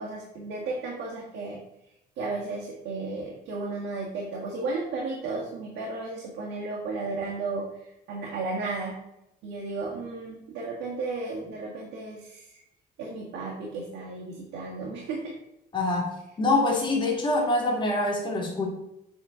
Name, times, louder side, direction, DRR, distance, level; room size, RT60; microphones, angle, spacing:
voice 1, 0.0-1.6 2.2-9.0 9.4-12.6 13.0-15.3, right 3 dB, 85° right, -3 dB, 1.8 m, -34 dB
voice 2, 15.7-18.7, left 2 dB, 25° left, -1 dB, 1.8 m, -25 dB
7.9 x 4.0 x 5.0 m, 0.85 s
cardioid pair, 175°, 18 cm